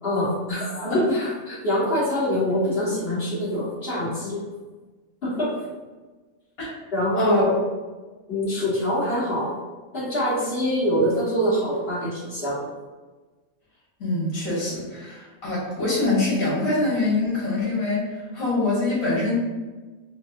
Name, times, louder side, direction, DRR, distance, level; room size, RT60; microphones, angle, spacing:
voice 1, 0.0-4.4 5.2-5.7 6.9-7.6 8.3-9.5 9.9-12.7, equal, 45° left, -10 dB, 1.8 m, -24 dB
voice 2, 14.0-19.3, left 2 dB, 80° left, -7 dB, 1.8 m, -24 dB
4.0 x 2.3 x 2.7 m, 1.3 s
omnidirectional pair, 1.5 m